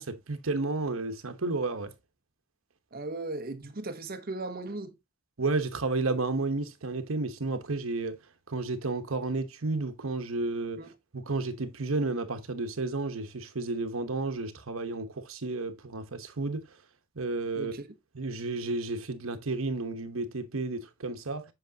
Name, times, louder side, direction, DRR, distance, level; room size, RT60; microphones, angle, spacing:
voice 1, 0.0-1.9 5.4-8.1 8.5-10.8 11.1-16.6 17.2-17.7 18.1-21.4, right 3 dB, 80° right, 1.0 m, -32 dB
voice 2, 2.9-5.0 10.8-10.9 17.6-17.9, right 2 dB, 45° right, 1.0 m, -37 dB
8.0 x 5.7 x 2.8 m
head